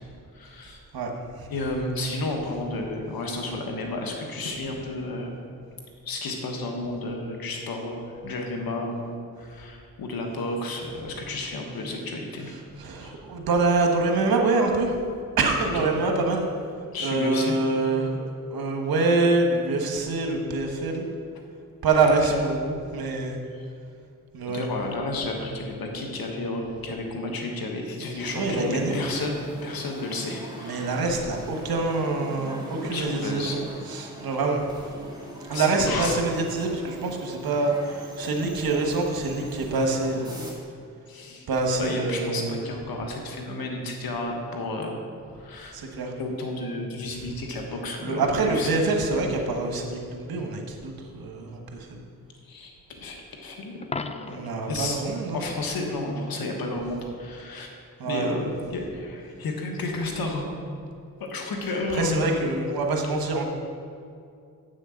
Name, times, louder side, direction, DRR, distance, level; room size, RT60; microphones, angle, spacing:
voice 1, 0.3-0.8 1.5-5.3 6.0-12.5 13.0-13.2 15.7-15.9 16.9-17.6 22.1-22.4 23.5-23.7 24.5-30.9 32.9-33.6 35.5-36.1 41.1-41.5 41.8-45.0 45.4-45.8 46.2-48.8 52.4-53.8 54.0-54.4 54.7-55.0 55.3-57.7 58.0-60.5 61.2-62.2, left 2 dB, 85° left, 1 dB, 1.5 m, -32 dB
voice 2, 12.8-15.0 15.4-16.5 17.0-21.1 21.8-23.4 24.3-24.7 28.3-29.0 30.6-34.7 35.5-40.4 41.5-42.6 45.7-46.1 48.0-52.0 54.3-55.5 58.0-58.3 61.9-63.5, right 3 dB, 90° right, 2 dB, 1.3 m, -25 dB
sound 1, 28.2-40.5, equal, 10° right, 2.0 m, -42 dB
Coin (dropping), 53.8-54.7 60.8-60.9, left 3 dB, 20° left, 0.5 m, -35 dB
8.0 x 6.5 x 6.3 m, 2.4 s
cardioid pair, 65°, 35 cm